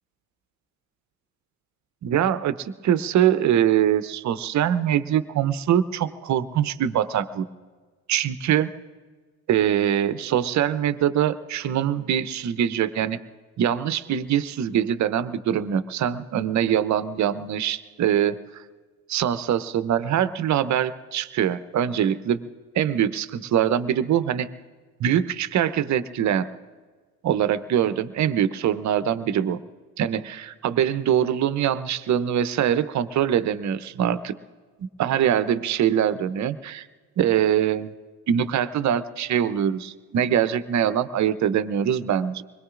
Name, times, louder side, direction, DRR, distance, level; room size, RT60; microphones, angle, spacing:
voice 1, 2.0-7.5 8.1-8.7 9.5-13.2 13.6-18.6 19.1-22.5 22.7-24.5 25.0-26.5 27.2-29.6 30.0-34.4 34.8-36.9 37.2-37.9 38.3-42.4, right 10 dB, 40° right, 14 dB, 0.7 m, -23 dB
25.0 x 21.5 x 2.5 m, 1.4 s
hypercardioid pair, 65°, 45 cm